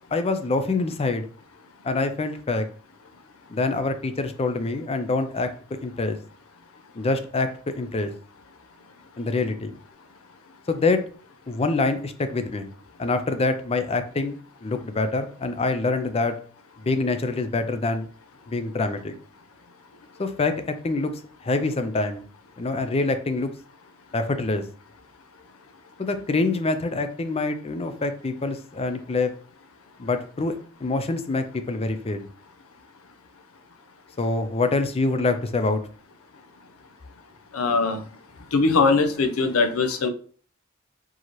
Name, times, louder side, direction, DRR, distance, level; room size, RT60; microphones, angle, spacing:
voice 1, 0.1-1.3 1.8-2.7 3.5-5.5 5.8-6.2 7.0-7.5 7.8-8.1 9.2-9.7 10.7-11.0 11.5-12.7 13.0-16.4 16.8-18.1 18.5-19.1 20.2-20.6 20.8-21.1 21.4-22.2 22.6-23.5 24.1-24.6 26.0-29.3 30.0-30.5 30.8-32.3 34.2-35.8, left 3 dB, 30° left, 8 dB, 0.4 m, -25 dB
voice 2, 37.5-38.0 38.5-40.1, left 4 dB, 85° left, 9 dB, 0.6 m, -21 dB
4.6 x 2.8 x 3.0 m, 0.44 s
head